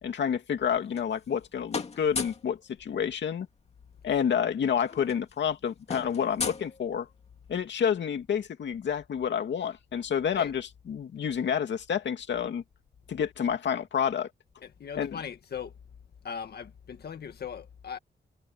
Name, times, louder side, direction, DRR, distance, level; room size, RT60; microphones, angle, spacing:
voice 1, 0.0-3.5 4.0-7.1 7.5-12.6 13.1-14.3 15.0-15.2, left 8 dB, 80° left, 2.4 m, -29 dB
sound 1, 0.6-1.4 1.7-2.5 3.9-4.0 4.2-4.4 4.7-7.3, left 4 dB, 35° left, 2.3 m, -37 dB
voice 2, 14.6-15.7 16.2-18.0, left 7 dB, 60° left, 1.9 m, -39 dB
wide cardioid pair, 170°, 18 cm